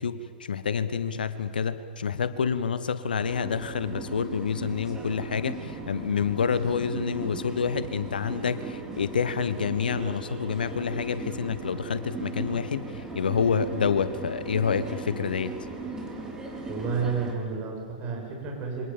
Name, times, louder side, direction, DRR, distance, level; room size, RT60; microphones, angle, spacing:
voice 1, 0.0-15.5, left 6 dB, 70° left, 13 dB, 1.3 m, -28 dB
sound 1, 3.2-17.4, right 2 dB, 10° right, 5.0 m, -38 dB
voice 2, 16.7-18.8, right 5 dB, 35° right, 0 dB, 8.0 m, -31 dB
28.0 x 25.5 x 7.4 m, 2.3 s
figure-of-eight pair, 100°, 5 cm